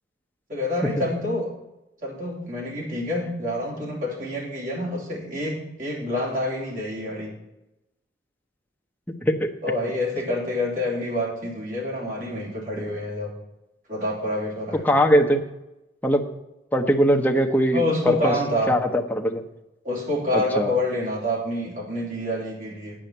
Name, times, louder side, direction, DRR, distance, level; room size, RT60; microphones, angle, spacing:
voice 1, 0.5-1.5 2.0-7.3 9.6-13.3 13.9-14.8 17.7-18.7 19.8-22.9, left 1 dB, 50° right, -3 dB, 3.4 m, -27 dB
voice 2, 9.1-9.5 14.8-15.4 16.0-16.2 16.7-18.4 18.7-19.4 20.3-20.7, equal, 10° left, 2 dB, 0.9 m, -21 dB
8.9 x 5.6 x 8.0 m, 0.93 s
head